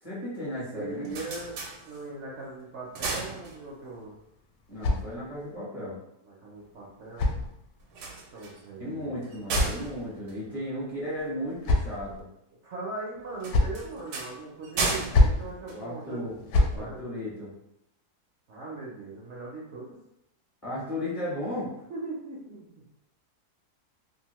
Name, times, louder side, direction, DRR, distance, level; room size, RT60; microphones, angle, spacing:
voice 1, 0.0-1.1 4.7-6.0 8.8-12.3 15.7-16.4 16.7-17.5 20.6-21.7, left 1 dB, 30° left, -8 dB, 0.7 m, -35 dB
voice 2, 0.7-4.2 6.2-7.5 8.3-9.1 10.5-10.7 12.6-17.1 18.5-20.0 21.6-22.8, right 3 dB, 60° right, -4 dB, 0.8 m, -40 dB
sound 1, 0.8-2.3 2.7-4.0 7.8-11.3 13.4-16.4, right 3 dB, 85° right, 1.2 m, -35 dB
sound 2, 3.9-5.6 6.6-8.0 9.0-10.3 11.2-12.2 13.1-13.9 14.9-15.5 16.2-16.8, left 2 dB, 75° left, 1.0 m, -28 dB
2.8 x 2.5 x 3.0 m, 0.82 s
omnidirectional pair, 1.7 m